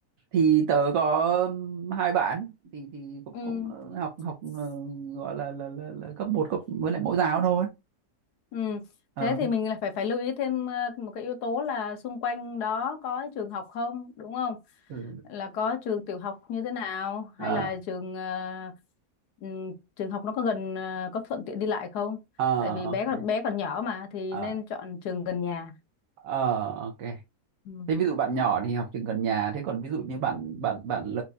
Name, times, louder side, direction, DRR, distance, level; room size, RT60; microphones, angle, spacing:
voice 1, 0.3-7.7 9.2-9.5 14.9-15.2 17.4-17.7 22.4-23.2 24.3-24.6 26.2-27.2 27.9-31.2, right 7 dB, 65° right, 1.1 m, -28 dB
voice 2, 3.3-3.7 8.5-8.8 9.2-14.6 15.3-18.8 19.4-22.2 22.6-25.7 27.6-27.9, left 6 dB, 85° left, 1.4 m, -31 dB
4.4 x 2.4 x 3.9 m
omnidirectional pair, 1.6 m